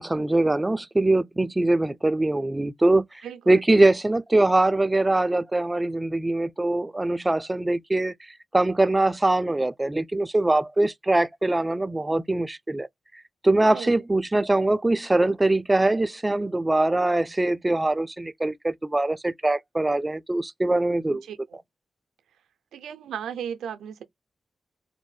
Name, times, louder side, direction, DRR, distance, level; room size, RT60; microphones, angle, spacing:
voice 1, 0.0-8.1 8.5-12.9 13.4-21.2, right 2 dB, 20° right, 0.3 m, -22 dB
voice 2, 3.2-3.6 13.6-14.0 21.1-21.4 22.7-24.0, right 8 dB, 90° right, 0.4 m, -35 dB
2.5 x 2.1 x 3.1 m
supercardioid pair, 45°, 0 cm